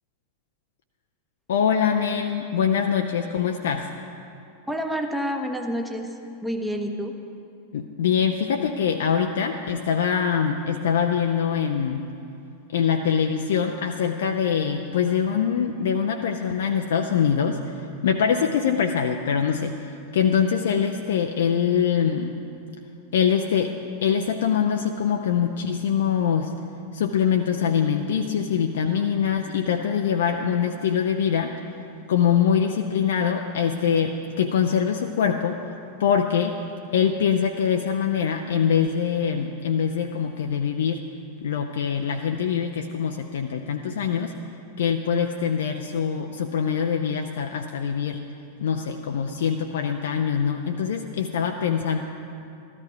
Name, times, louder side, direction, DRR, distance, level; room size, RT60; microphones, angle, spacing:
voice 1, 1.5-3.9 7.7-12.1 12.7-22.3 23.1-23.7 24.0-26.5 26.9-31.6 32.1-35.6 36.0-36.6 36.9-41.0 41.4-44.3 44.8-48.2 48.6-52.0, left 7 dB, 60° left, 4 dB, 0.6 m, -23 dB
voice 2, 4.7-7.2, equal, 5° right, 3 dB, 1.2 m, -29 dB
14.0 x 13.5 x 4.9 m, 2.6 s
figure-of-eight pair, 90°, 0 cm